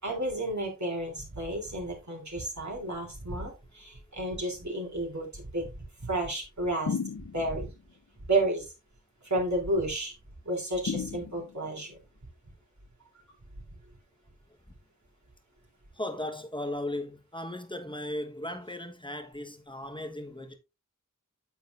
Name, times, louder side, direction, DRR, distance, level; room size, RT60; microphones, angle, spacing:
voice 1, 0.0-7.0 7.3-7.7 8.3-8.7 9.2-10.1 10.4-12.0, right 1 dB, 60° right, 3.4 m, -31 dB
sound 1, 6.9-7.7 10.9-11.8, left 5 dB, 65° left, 0.8 m, -34 dB
voice 2, 15.9-20.6, left 1 dB, 15° left, 1.2 m, -36 dB
9.1 x 7.6 x 2.6 m
wide cardioid pair, 50°, 32 cm